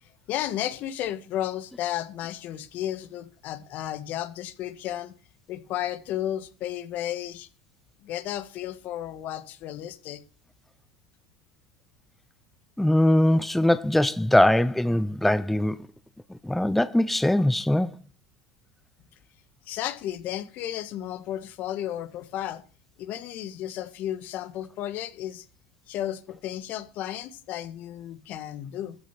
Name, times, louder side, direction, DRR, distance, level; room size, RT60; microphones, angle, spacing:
voice 1, 0.0-5.1 5.5-7.5 8.0-10.2 19.6-22.6 23.0-25.4 25.9-28.9, left 12 dB, 55° left, 1.6 m, -33 dB
voice 2, 12.8-15.8 16.4-18.0, left 1 dB, 5° left, 0.5 m, -21 dB
14.0 x 8.7 x 6.0 m
hypercardioid pair, 85°, 4 cm